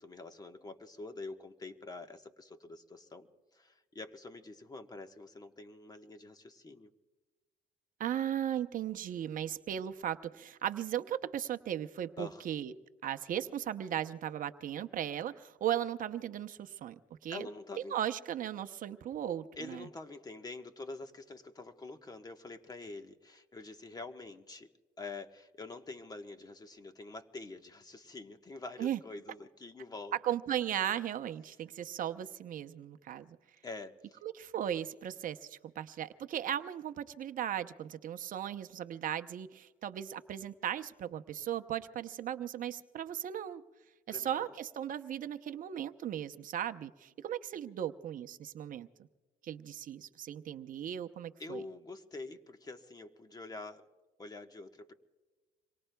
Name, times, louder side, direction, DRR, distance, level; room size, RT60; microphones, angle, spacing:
voice 1, 0.0-3.3 3.5-6.9 12.2-12.4 17.3-18.0 19.6-24.7 25.0-30.2 33.6-34.2 44.1-44.5 51.4-53.9 54.2-54.9, left 3 dB, 20° left, 6 dB, 1.2 m, -46 dB
voice 2, 8.0-12.7 13.0-17.5 17.9-19.9 28.8-29.0 30.2-33.4 34.2-43.6 44.1-48.9 49.4-51.6, right 10 dB, 55° right, 10 dB, 0.7 m, -37 dB
27.0 x 23.5 x 2.3 m, 1.3 s
cardioid pair, 110°, 17 cm